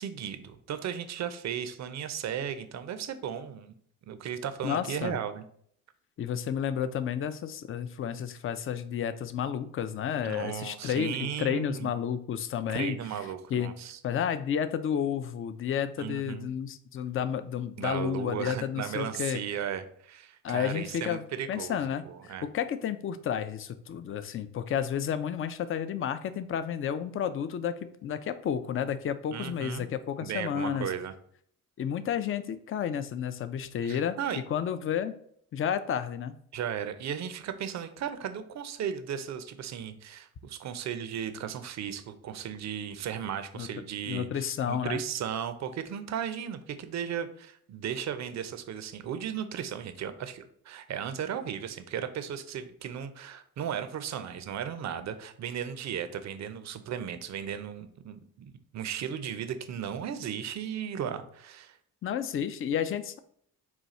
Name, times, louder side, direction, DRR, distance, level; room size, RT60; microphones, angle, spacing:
voice 1, 0.0-3.7 4.1-5.4 10.2-11.9 12.7-14.0 16.0-16.5 17.8-21.8 22.1-22.5 29.3-29.9 30.2-31.1 33.8-34.4 36.5-61.8, right 8 dB, 45° right, 10 dB, 0.5 m, -36 dB
voice 2, 4.6-5.2 6.2-13.0 13.5-13.7 14.0-19.4 20.4-30.9 31.8-34.2 34.5-35.1 35.5-36.4 43.6-43.7 44.1-45.0 62.0-63.2, left 8 dB, 35° left, 11 dB, 0.4 m, -31 dB
4.0 x 2.3 x 4.2 m, 0.64 s
supercardioid pair, 60°, 38 cm